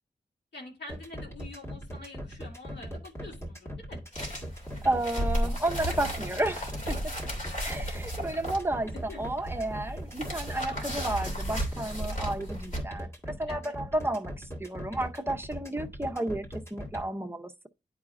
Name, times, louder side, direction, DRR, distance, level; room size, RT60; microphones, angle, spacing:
voice 1, 0.5-4.0 9.1-9.2 10.6-10.9 13.5-13.7, left 2 dB, 70° left, 2.5 m, -46 dB
sound 1, 0.9-17.0, equal, 15° left, 1.8 m, -39 dB
sound 2, 4.1-12.8, equal, 45° left, 2.8 m, -34 dB
voice 2, 4.8-7.1 7.6-17.7, right 1 dB, 10° right, 0.7 m, -32 dB
11.0 x 4.8 x 2.5 m
wide cardioid pair, 125°, 18 cm